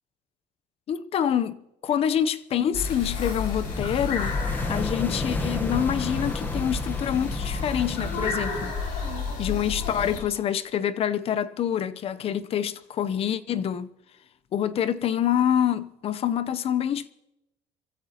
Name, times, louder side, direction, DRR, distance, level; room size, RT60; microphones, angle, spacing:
voice 1, 0.9-4.4 4.7-9.1 9.4-13.9 14.5-17.1, left 9 dB, 45° left, 0.7 m, -26 dB
sound 1, 2.7-10.2, left 4 dB, 90° left, 6.1 m, -31 dB
sound 2, 3.6-8.7, left 2 dB, 15° left, 1.1 m, -32 dB
28.0 x 15.5 x 2.9 m
cardioid pair, 130°, 14 cm